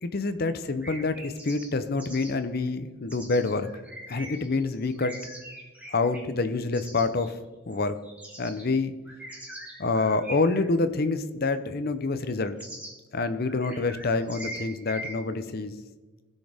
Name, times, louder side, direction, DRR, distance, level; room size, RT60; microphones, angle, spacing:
voice 1, 0.0-3.7 4.1-5.2 5.9-7.4 7.7-8.0 8.4-8.9 9.8-12.6 13.1-15.7, left 3 dB, 45° left, 11 dB, 0.6 m, -27 dB
sound 1, 0.8-1.7 2.0-2.3 3.1-7.3 7.7-8.6 9.0-10.7 11.4-11.5 12.6-12.9 13.5-15.2, right 1 dB, 5° right, 1.8 m, -42 dB
16.5 x 6.4 x 3.4 m, 1.2 s
head